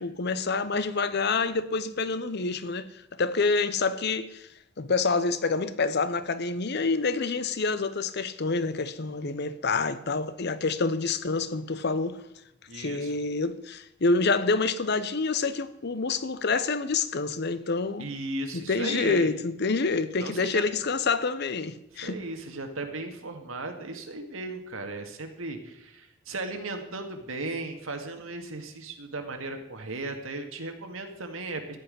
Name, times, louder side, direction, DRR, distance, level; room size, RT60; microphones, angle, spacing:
voice 1, 0.0-4.5 4.8-12.2 12.7-18.1 18.5-22.2, left 4 dB, 55° left, 0.8 m, -27 dB
voice 2, 12.7-13.2 18.0-19.3 20.2-20.6 21.9-31.8, right 2 dB, 90° right, 2.0 m, -36 dB
14.5 x 5.8 x 9.7 m
head